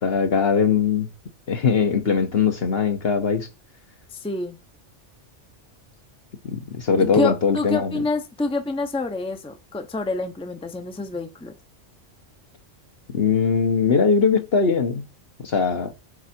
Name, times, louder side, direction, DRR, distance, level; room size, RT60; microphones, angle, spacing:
voice 1, 0.0-1.1 1.5-3.5 6.4-8.0 13.1-15.0 15.4-15.9, left 5 dB, 55° left, 1.3 m, -21 dB
voice 2, 4.1-4.6 7.0-11.6, left 2 dB, 5° left, 0.8 m, -27 dB
7.9 x 4.8 x 4.4 m
omnidirectional pair, 1.2 m